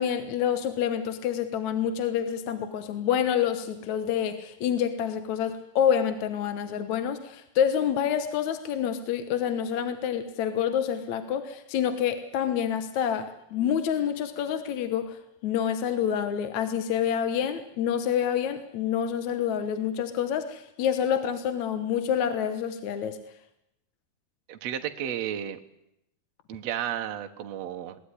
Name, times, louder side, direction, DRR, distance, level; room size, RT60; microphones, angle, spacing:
voice 1, 0.0-15.2 15.4-23.2, left 9 dB, 60° left, 10 dB, 2.3 m, -27 dB
voice 2, 24.5-25.6 26.5-28.0, right 10 dB, 60° right, 5 dB, 2.1 m, -33 dB
22.0 x 19.0 x 9.9 m, 0.82 s
omnidirectional pair, 4.2 m